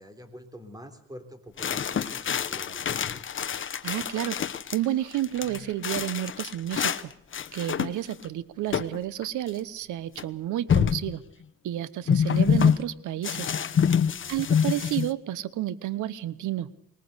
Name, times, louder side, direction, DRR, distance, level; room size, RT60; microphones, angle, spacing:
voice 1, 0.0-3.3 14.2-14.8, equal, 10° right, 8 dB, 3.6 m, -47 dB
sound 1, 1.6-4.8 5.1-7.0 7.3-8.2 8.7-9.0 9.2-9.3 10.2-10.3 10.7-11.1 12.1-12.8 13.2-15.1, left 7 dB, 40° left, 1.1 m, -26 dB
voice 2, 3.8-4.4 4.7-7.1 7.5-11.2 11.6-13.5 14.3-16.7, right 13 dB, 80° right, 18 dB, 1.0 m, -31 dB
20.5 x 19.5 x 8.1 m, 0.67 s
cardioid pair, 90°, 30 cm